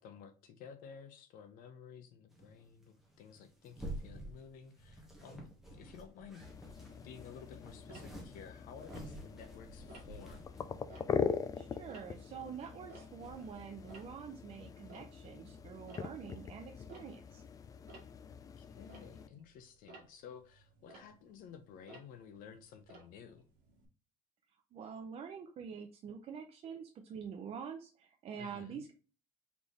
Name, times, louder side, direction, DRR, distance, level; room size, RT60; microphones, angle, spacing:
voice 1, 0.0-6.4 6.9-10.5 18.6-23.5 28.4-28.8, left 7 dB, 65° left, 0.7 m, -53 dB
sound 1, 2.3-10.8 11.4-11.5 11.7-12.7 13.0-14.1, right 1 dB, ahead, 1.2 m, -50 dB
sound 2, 6.4-19.3, left 6 dB, 25° left, 0.3 m, -42 dB
Tick-tock, 7.9-9.5 9.9-10.3 10.7-13.5 13.7-23.9, right 3 dB, 60° right, 1.8 m, -58 dB
voice 2, 11.6-17.4 24.7-28.9, right 7 dB, 40° right, 0.5 m, -46 dB
4.1 x 3.5 x 3.0 m
cardioid pair, 145°, 16 cm